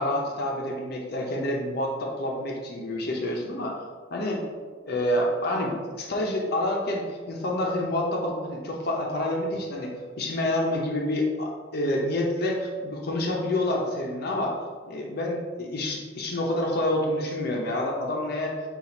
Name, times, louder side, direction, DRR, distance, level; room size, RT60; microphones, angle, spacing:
voice 1, 0.0-3.8 4.1-4.4 4.9-14.6 14.8-18.6, left 1 dB, 55° left, -1 dB, 0.6 m, -28 dB
4.1 x 2.4 x 4.1 m, 1.5 s
head